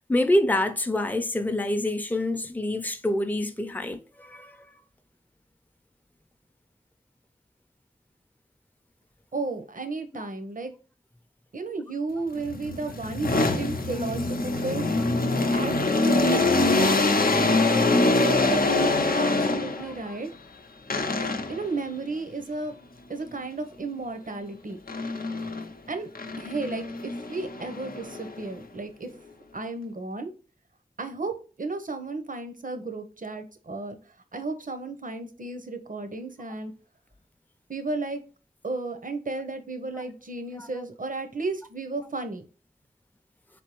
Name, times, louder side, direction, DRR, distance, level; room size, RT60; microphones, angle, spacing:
voice 1, 0.1-4.7 10.1-10.2 19.8-20.2 39.9-40.0 40.5-40.7, left 1 dB, 10° left, 0.5 m, -27 dB
voice 2, 9.3-10.7 11.5-14.8 15.5-15.7 16.0-16.7 18.0-20.3 21.5-22.7 23.1-24.8 25.9-26.1 26.4-29.1 29.5-30.3 31.0-31.3 31.6-34.0 34.3-36.7 37.7-38.2 38.6-42.4, right 3 dB, 60° right, 0.7 m, -33 dB
sound 1, 12.4-20.0 20.9-21.7 24.9-25.7 26.1-28.5, left 2 dB, 70° left, 0.6 m, -24 dB
4.4 x 3.4 x 3.0 m
wide cardioid pair, 45°, 16 cm